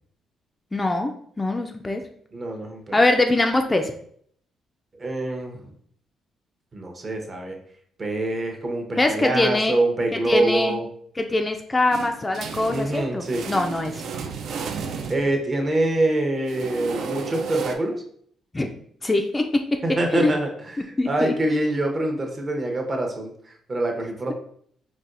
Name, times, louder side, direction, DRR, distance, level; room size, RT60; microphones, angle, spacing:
voice 1, 0.7-2.0 2.9-3.9 9.0-9.8 10.1-10.8 11.2-14.0 18.5-18.7 19.0-19.8 20.1-20.3 21.0-21.3, left 2 dB, 20° left, 4 dB, 0.3 m, -23 dB
voice 2, 2.3-3.0 4.9-5.7 6.7-7.6 8.0-10.9 12.7-13.4 15.1-18.0 19.8-23.3 23.7-24.3, right 2 dB, 35° right, 3 dB, 0.7 m, -25 dB
sound 1, 11.9-15.7 16.5-17.7, right 5 dB, 70° right, 0.3 m, -33 dB
4.0 x 2.2 x 2.5 m, 0.63 s
cardioid pair, 90°, 0 cm